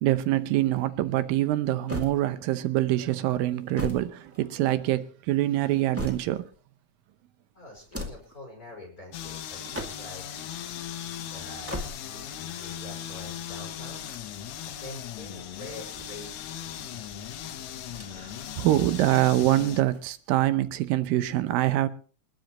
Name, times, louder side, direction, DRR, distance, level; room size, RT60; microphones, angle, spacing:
voice 1, 0.0-6.4 18.1-21.9, right 14 dB, 75° right, 2.4 m, -25 dB
sound 1, 1.9-2.7 3.5-4.9 5.5-6.6 7.7-8.4 9.5-10.3 11.4-12.3 13.8-14.8 15.7-16.6 17.8-18.4 18.7-18.8 19.8-20.6, equal, 5° right, 1.1 m, -39 dB
voice 2, 7.5-10.3 11.3-14.1 14.6-17.3, left 1 dB, 20° left, 5.2 m, -46 dB
sound 2, 9.1-19.8, left 10 dB, 70° left, 1.6 m, -38 dB
28.5 x 10.5 x 3.1 m
omnidirectional pair, 4.4 m